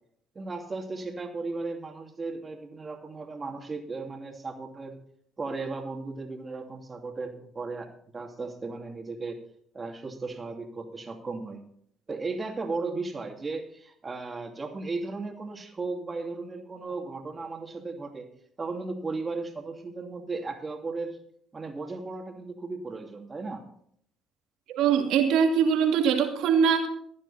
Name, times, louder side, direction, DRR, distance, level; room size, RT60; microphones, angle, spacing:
voice 1, 0.3-5.0 5.4-7.9 8.1-9.4 9.7-11.6 12.1-18.3 18.6-21.2 21.5-23.6, right 3 dB, 30° right, 4 dB, 2.7 m, -35 dB
voice 2, 24.7-26.9, right 7 dB, 75° right, 3 dB, 2.5 m, -22 dB
15.0 x 11.0 x 4.3 m, 0.67 s
supercardioid pair, 70°, 0 cm